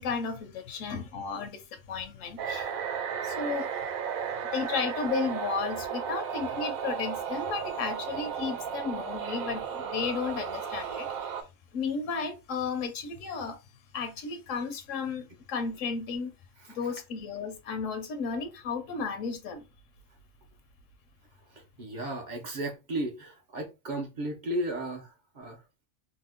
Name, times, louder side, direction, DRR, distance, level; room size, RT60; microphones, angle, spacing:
voice 1, 0.0-2.7 3.2-3.9 4.3-11.3 11.7-13.6 13.9-16.3 16.7-19.6, left 5 dB, 75° left, 0.9 m, -34 dB
sound 1, 2.4-11.4, right 7 dB, 85° right, 1.0 m, -34 dB
voice 2, 16.6-16.9 21.5-25.6, right 1 dB, 50° right, 0.6 m, -35 dB
2.8 x 2.1 x 3.4 m
omnidirectional pair, 1.4 m